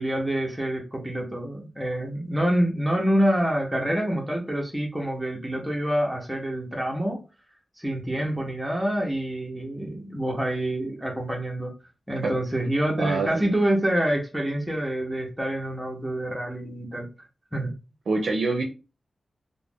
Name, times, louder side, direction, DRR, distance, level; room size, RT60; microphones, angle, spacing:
voice 1, 0.0-7.2 7.8-11.7 12.1-17.7, right 1 dB, 5° right, -1 dB, 0.6 m, -27 dB
voice 2, 13.0-13.5 18.1-18.6, right 3 dB, 85° right, 2 dB, 0.4 m, -25 dB
2.3 x 2.0 x 3.4 m, 0.31 s
wide cardioid pair, 145°, 0 cm